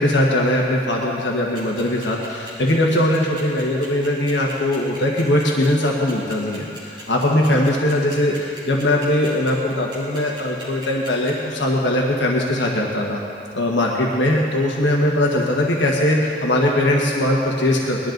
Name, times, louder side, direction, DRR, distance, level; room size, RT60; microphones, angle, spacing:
voice 1, 0.0-13.2 13.5-18.1, left 1 dB, 75° left, -2 dB, 1.5 m, -20 dB
sound 1, 1.5-11.3, right 2 dB, 25° right, 3.9 m, -39 dB
20.0 x 12.5 x 4.0 m, 2.5 s
head